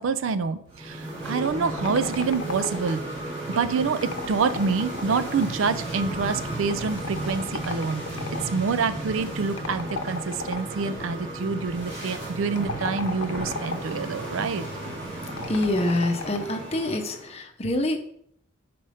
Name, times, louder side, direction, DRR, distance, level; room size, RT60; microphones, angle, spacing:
voice 1, 0.0-3.0 3.5-8.0 8.5-14.7, right 5 dB, 70° right, 13 dB, 0.4 m, -27 dB
sound 1, 0.7-17.3, right 1 dB, 30° right, 2.2 m, -34 dB
sound 2, 1.4-3.1 3.9-5.7 6.7-8.5 9.6-10.9 12.4-14.0 15.3-16.6, left 4 dB, 80° left, 0.8 m, -36 dB
voice 2, 15.5-18.1, left 1 dB, 30° left, 4 dB, 0.7 m, -26 dB
5.4 x 4.3 x 4.9 m, 0.69 s
head